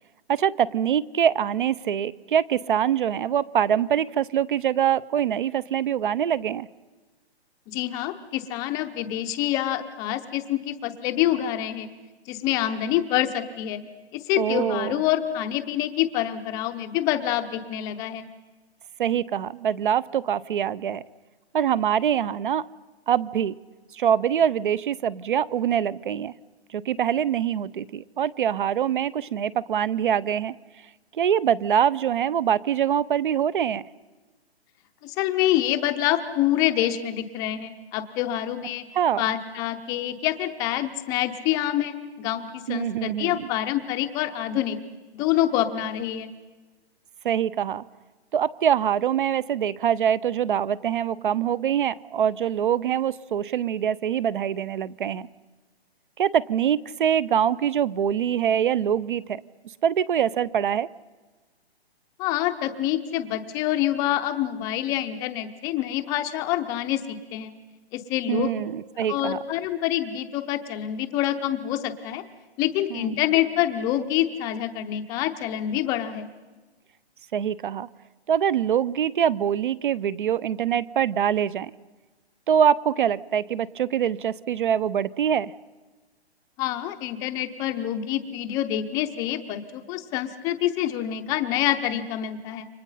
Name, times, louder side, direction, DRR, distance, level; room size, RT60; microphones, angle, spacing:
voice 1, 0.3-6.7 14.4-15.0 19.0-21.0 21.5-22.7 23.1-23.5 23.9-26.3 26.7-30.6 31.1-33.8 38.9-39.2 42.7-43.5 47.2-47.8 48.3-55.3 56.2-59.4 59.8-60.9 68.3-69.4 72.9-73.2 77.3-77.9 78.3-81.7 82.5-85.5, right 9 dB, 50° right, 0.8 m, -24 dB
voice 2, 7.7-11.9 12.3-13.8 14.1-18.3 35.0-38.9 39.2-44.8 45.1-46.3 62.2-67.5 67.9-68.5 69.1-72.2 72.6-76.3 86.6-92.7, left 12 dB, 10° left, 0.7 m, -26 dB
29.5 x 24.5 x 5.6 m
hypercardioid pair, 160°, 33 cm